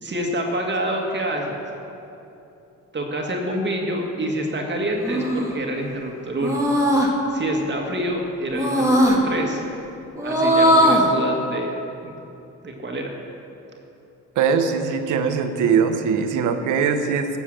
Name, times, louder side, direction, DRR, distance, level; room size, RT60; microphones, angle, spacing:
voice 1, 0.0-1.6 2.9-6.6 7.3-9.6 10.2-11.7 12.0-12.1 12.6-13.1, right 1 dB, 35° right, 1 dB, 1.9 m, -27 dB
sound 1, 5.0-5.5 6.4-7.1 8.5-9.2 10.2-11.1, equal, 10° right, 1.9 m, -18 dB
voice 2, 14.4-17.3, right 6 dB, 85° right, 7 dB, 1.1 m, -21 dB
13.0 x 7.2 x 7.7 m, 2.9 s
cardioid pair, 90°, 30 cm